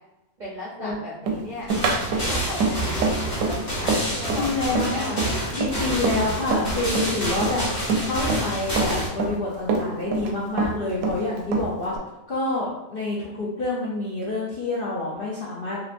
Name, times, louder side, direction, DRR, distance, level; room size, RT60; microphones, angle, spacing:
voice 1, 0.4-1.7 2.1-5.1, left 1 dB, 50° right, -7 dB, 0.5 m, -36 dB
Run, 1.3-6.7 6.9-8.5 8.8-10.3 10.6-12.0, right 4 dB, 70° right, 0.9 m, -25 dB
sound 1, 1.7-9.1, equal, 40° left, 1.4 m, -28 dB
voice 2, 4.3-5.2 5.5-7.7 8.0-11.9 12.3-15.8, left 2 dB, 60° left, -6 dB, 0.6 m, -27 dB
3.1 x 2.9 x 2.5 m, 1.0 s
omnidirectional pair, 1.6 m